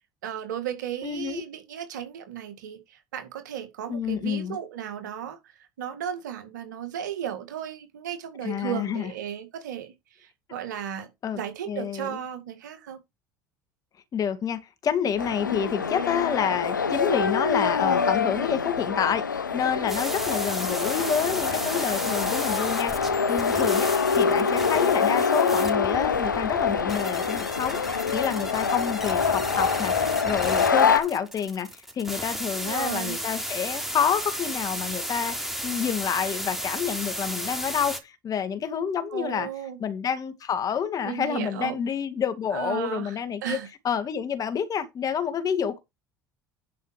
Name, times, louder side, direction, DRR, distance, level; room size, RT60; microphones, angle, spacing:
voice 1, 0.2-11.1 11.3-13.0 24.1-25.2 32.5-33.2 39.1-39.8 41.0-41.8 42.5-43.7, right 10 dB, 70° right, 2.2 m, -35 dB
voice 2, 1.0-1.4 3.9-4.6 8.4-9.1 11.2-11.4 11.7-12.2 14.1-23.9 24.2-39.5 39.8-43.6 43.8-45.8, left 7 dB, 35° left, 2.0 m, -28 dB
sound 1, 15.2-31.0, left 6 dB, 85° left, 0.7 m, -25 dB
sound 2, 19.9-38.0, equal, 5° right, 3.1 m, -34 dB
11.0 x 5.5 x 4.7 m
figure-of-eight pair, 65°, 10 cm